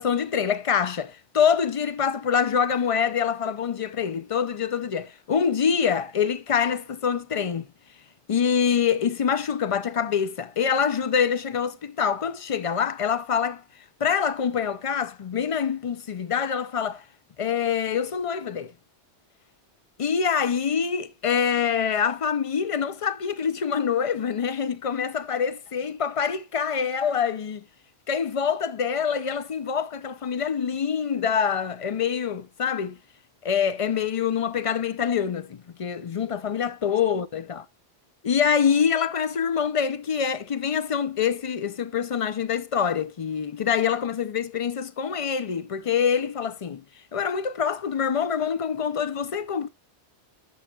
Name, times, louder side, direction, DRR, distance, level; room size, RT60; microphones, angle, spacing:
voice 1, 0.0-7.6 8.3-13.6 14.0-17.0 17.4-18.7 20.0-27.6 28.1-33.0 33.4-37.7 38.2-46.8 47.1-49.7, left 7 dB, 60° left, 0.3 m, -25 dB
10.5 x 6.8 x 2.3 m
omnidirectional pair, 1.2 m